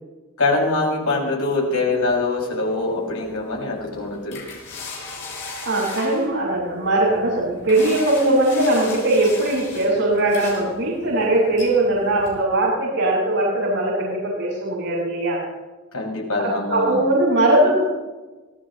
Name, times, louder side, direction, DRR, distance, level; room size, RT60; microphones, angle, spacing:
voice 1, 0.4-4.4 15.9-17.0, left 3 dB, 85° left, -2 dB, 6.3 m, -23 dB
sound 1, 1.9-12.4, left 3 dB, 55° left, 7.1 m, -38 dB
voice 2, 5.6-15.4 16.4-17.8, right 1 dB, 85° right, -8 dB, 5.9 m, -20 dB
25.0 x 16.5 x 3.2 m, 1.2 s
head